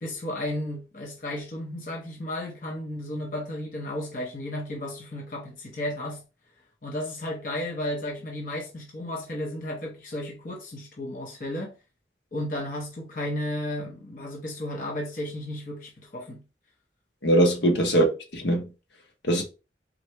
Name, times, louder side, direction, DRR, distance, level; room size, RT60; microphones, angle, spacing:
voice 1, 0.0-6.2 6.8-11.8 12.3-16.4 17.4-17.5, left 1 dB, 45° left, 0.8 m, -33 dB
voice 2, 17.2-18.6 19.3-19.4, right 1 dB, 80° left, 1.2 m, -21 dB
3.8 x 2.3 x 4.5 m
head